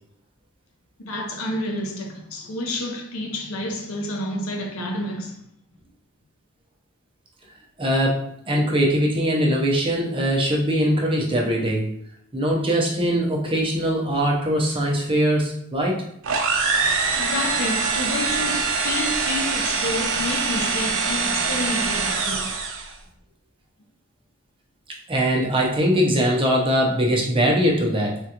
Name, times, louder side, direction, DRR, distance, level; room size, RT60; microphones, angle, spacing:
voice 1, 1.0-5.4 17.2-22.5, left 1 dB, 75° left, 0.6 m, -29 dB
voice 2, 7.8-11.9 12.3-16.0 25.1-28.2, equal, 25° right, 0.6 m, -21 dB
sound 1, 16.2-22.9, right 4 dB, 65° right, 0.5 m, -24 dB
3.6 x 2.3 x 2.9 m
head